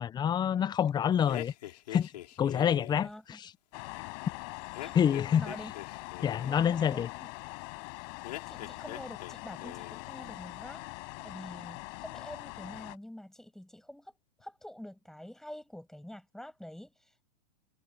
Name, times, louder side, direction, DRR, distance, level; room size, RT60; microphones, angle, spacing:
voice 1, 0.0-1.5 1.9-2.1 2.4-3.5 4.9-5.5 6.2-7.1, left 8 dB, 20° left, 0.8 m, -27 dB
sound 1, 1.3-3.1 4.7-6.6 8.2-9.3 9.6-10.1, left 14 dB, 70° left, 5.0 m, -44 dB
voice 2, 3.0-3.4 4.8-5.0 5.3-5.7 6.4-7.3 8.5-10.8 11.2-17.2, left 1 dB, ahead, 7.8 m, -47 dB
sound 2, 3.7-13.0, left 36 dB, 50° left, 6.5 m, -43 dB
hypercardioid pair, 125°, 21 cm